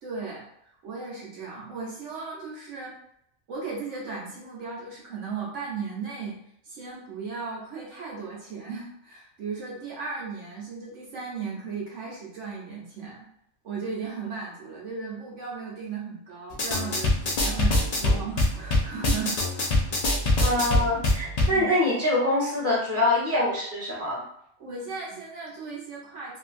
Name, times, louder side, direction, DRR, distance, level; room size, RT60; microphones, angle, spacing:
voice 1, 0.0-2.9 3.5-6.4 6.6-13.3 13.6-19.8 21.5-21.7 24.6-26.4, right 5 dB, 70° right, -4 dB, 1.1 m, -36 dB
sound 1, 16.5-21.6, left 2 dB, 70° left, 0.3 m, -24 dB
voice 2, 20.4-24.2, left 1 dB, 10° right, -7 dB, 0.9 m, -25 dB
2.7 x 2.5 x 2.4 m, 0.72 s
omnidirectional pair, 1.4 m